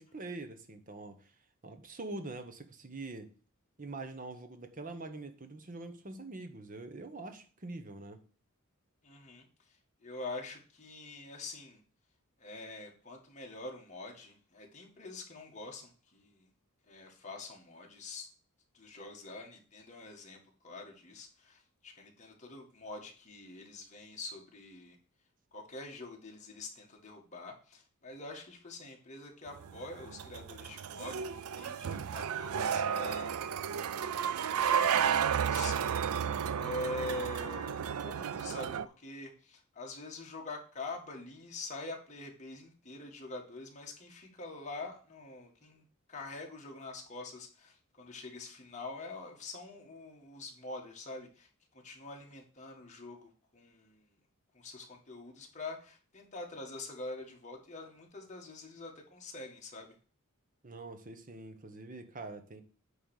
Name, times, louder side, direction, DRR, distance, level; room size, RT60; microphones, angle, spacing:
voice 1, 0.0-1.3 1.6-3.3 3.8-8.2 60.6-62.6, right 2 dB, 40° right, 1.0 m, -44 dB
voice 2, 9.0-9.8 10.0-11.8 12.4-16.5 16.9-18.3 18.7-25.0 25.5-33.3 34.1-54.1 54.5-59.9, left 2 dB, 35° left, 1.9 m, -45 dB
sound 1, 29.6-38.9, right 8 dB, 80° right, 0.4 m, -33 dB
9.2 x 3.3 x 6.5 m
head